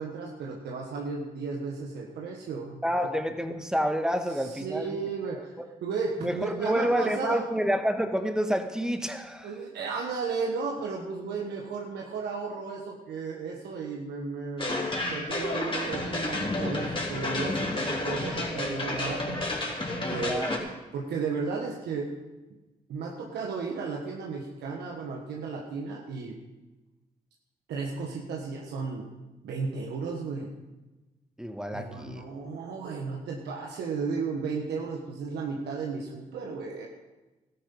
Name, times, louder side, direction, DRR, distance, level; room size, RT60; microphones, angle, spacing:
voice 1, 0.0-2.8 4.5-5.6 5.8-7.4 9.4-14.7 15.1-20.5 20.9-22.1 22.9-26.4 27.7-29.1 29.4-30.5 31.7-36.9, right 4 dB, 85° right, 0 dB, 1.3 m, -34 dB
voice 2, 2.8-5.0 6.2-9.5 20.2-20.6 31.4-32.2, equal, 5° right, 7 dB, 1.5 m, -28 dB
sound 1, 14.6-20.6, left 2 dB, 30° left, 3.4 m, -31 dB
13.5 x 10.5 x 5.4 m, 1.1 s
supercardioid pair, 55°, 17 cm